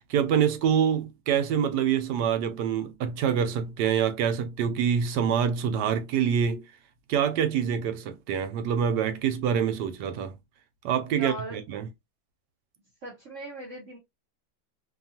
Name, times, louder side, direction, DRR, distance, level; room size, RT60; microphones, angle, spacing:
voice 1, 0.1-6.6 7.1-10.4 10.8-11.9, right 8 dB, 75° right, 1.2 m, -26 dB
voice 2, 11.1-11.6 13.0-14.0, right 2 dB, 50° right, 1.1 m, -38 dB
3.0 x 2.3 x 2.7 m
omnidirectional pair, 1.9 m